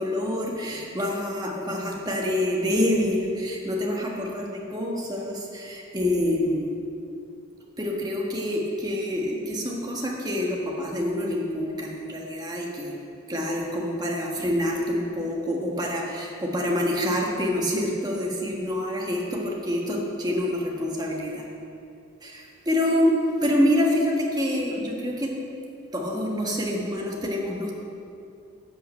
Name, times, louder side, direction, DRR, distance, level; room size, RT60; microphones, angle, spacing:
voice 1, 0.0-6.8 7.8-13.0 13.3-21.4 22.2-25.3 25.9-27.7, left 1 dB, 20° right, -1 dB, 1.4 m, -26 dB
11.0 x 5.6 x 7.7 m, 2.6 s
head